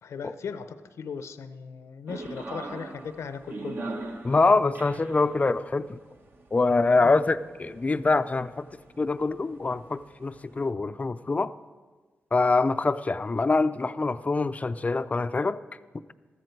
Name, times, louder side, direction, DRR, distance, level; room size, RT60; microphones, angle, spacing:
voice 1, 0.0-3.9 7.0-7.2, left 6 dB, 85° left, 0.7 m, -38 dB
sound 1, 2.1-10.7, right 2 dB, 50° right, 1.1 m, -42 dB
voice 2, 4.2-6.0 6.5-8.7 9.0-11.5 12.3-15.6, left 3 dB, 30° left, 0.5 m, -24 dB
14.0 x 14.0 x 4.6 m
cardioid pair, 85°, 5 cm